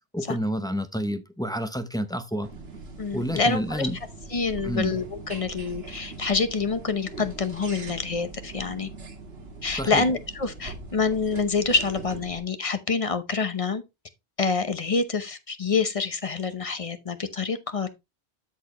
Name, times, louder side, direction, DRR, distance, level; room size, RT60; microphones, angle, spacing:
voice 1, 0.1-2.5 3.1-4.0 4.6-4.9 9.7-10.1, equal, 5° left, 0.4 m, -29 dB
sound 1, 2.4-12.4, right 3 dB, 65° right, 1.7 m, -41 dB
voice 2, 3.0-3.9 4.3-8.9 9.6-13.8 14.4-17.9, left 4 dB, 35° left, 0.8 m, -27 dB
13.0 x 4.3 x 2.9 m
omnidirectional pair, 1.1 m